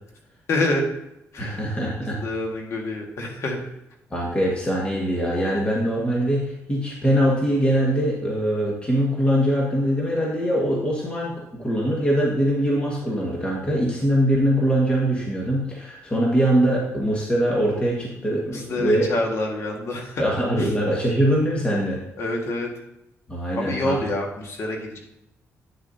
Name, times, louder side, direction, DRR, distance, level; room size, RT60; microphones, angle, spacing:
voice 1, 0.5-0.9 1.3-1.9 2.2-3.6 18.5-20.2 20.6-20.7 22.2-22.7 23.5-25.0, left 2 dB, 55° left, 1 dB, 1.7 m, -27 dB
voice 2, 1.4-2.2 4.1-19.1 20.2-22.0 23.3-24.0, equal, 20° left, -4 dB, 1.7 m, -22 dB
9.7 x 6.7 x 2.8 m, 0.85 s
cardioid pair, 115°, 5 cm